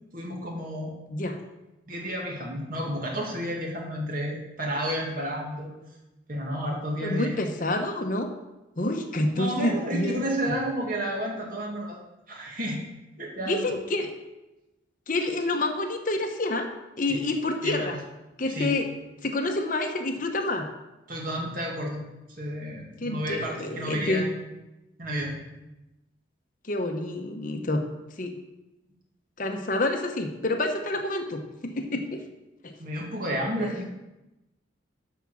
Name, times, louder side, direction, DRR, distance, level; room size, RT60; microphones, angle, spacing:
voice 1, 0.1-0.9 1.9-5.7 6.3-7.3 9.4-12.0 12.3-12.8 13.1-13.7 17.1-17.3 17.6-17.9 18.5-18.7 21.1-22.0 22.4-24.3 25.0-25.4 32.8-33.9, equal, 45° right, -1 dB, 2.4 m, -31 dB
voice 2, 7.0-8.3 8.8-10.6 13.4-14.1 15.1-16.7 17.0-18.0 18.4-18.9 19.2-20.7 23.0-24.3 26.6-27.8 28.2-28.4 29.4-32.2 32.6-32.7, left 2 dB, 45° left, 5 dB, 1.0 m, -28 dB
13.0 x 5.0 x 6.3 m, 0.99 s
head